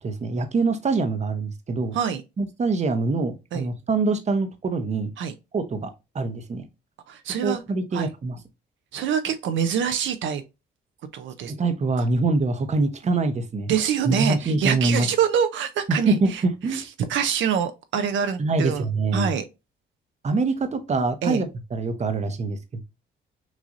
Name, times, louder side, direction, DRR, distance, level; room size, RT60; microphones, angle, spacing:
voice 1, 0.0-2.0 2.4-5.1 5.5-6.6 7.4-8.4 11.4-13.7 14.1-15.1 15.9-16.9 18.4-19.3 20.2-22.8, right 3 dB, 35° right, 0.8 m, -24 dB
voice 2, 7.1-7.6 7.9-8.1 8.9-10.4 11.1-11.5 12.0-12.1 13.7-16.4 16.7-16.8 17.1-18.8 19.1-19.4 21.2-21.4, right 8 dB, 70° right, 0.6 m, -25 dB
6.1 x 2.6 x 2.6 m
cardioid pair, 90°, 20 cm